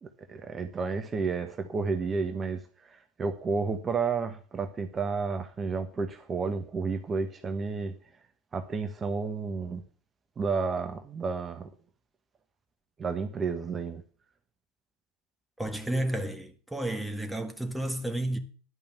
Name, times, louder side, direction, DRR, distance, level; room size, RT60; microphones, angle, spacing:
voice 1, 0.0-7.9 8.5-9.8 10.4-11.7 13.0-14.0, right 4 dB, 25° right, 1.2 m, -31 dB
voice 2, 15.6-18.4, right 1 dB, 5° right, 1.5 m, -31 dB
11.0 x 5.4 x 8.5 m
hypercardioid pair, 80°, 0 cm